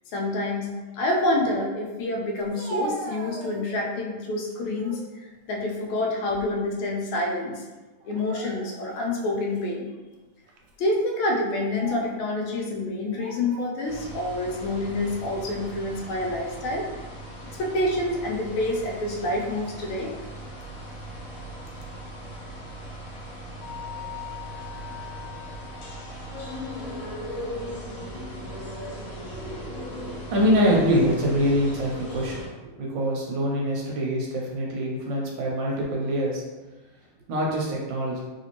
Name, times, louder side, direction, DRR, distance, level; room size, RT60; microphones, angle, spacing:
voice 1, 0.1-0.7 0.9-5.0 5.5-7.6 8.0-9.9 10.8-16.9 17.6-20.1, left 1 dB, 85° left, -1 dB, 1.5 m, -27 dB
Speech, 2.4-4.0 4.5-5.1 5.5-6.7 7.0-7.2 8.0-9.0 9.6-9.7 10.5-10.7 11.5-12.2 13.1-13.8, right 2 dB, 90° right, 1.5 m, -39 dB
sound 1, 13.9-32.5, equal, 65° left, 0.9 m, -38 dB
voice 2, 29.3-29.7 30.1-32.4 32.8-36.4 37.3-38.2, equal, 75° right, -2 dB, 1.2 m, -24 dB
3.2 x 2.8 x 2.9 m, 1.2 s
omnidirectional pair, 2.3 m